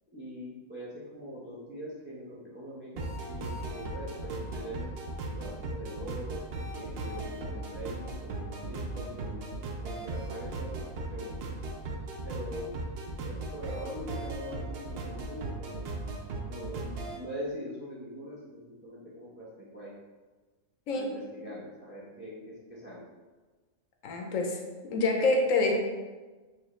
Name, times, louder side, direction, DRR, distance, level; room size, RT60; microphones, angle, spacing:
voice 1, 0.1-4.9 5.3-6.4 6.7-9.4 9.8-11.3 12.2-15.9 16.5-19.9 20.9-23.1, equal, 15° right, -7 dB, 0.4 m, -42 dB
sound 1, 3.0-17.2, right 2 dB, 60° right, 0.6 m, -37 dB
voice 2, 24.0-24.6 24.8-25.7, left 3 dB, 75° left, 2 dB, 1.0 m, -26 dB
4.7 x 2.3 x 3.0 m, 1.3 s
omnidirectional pair, 1.4 m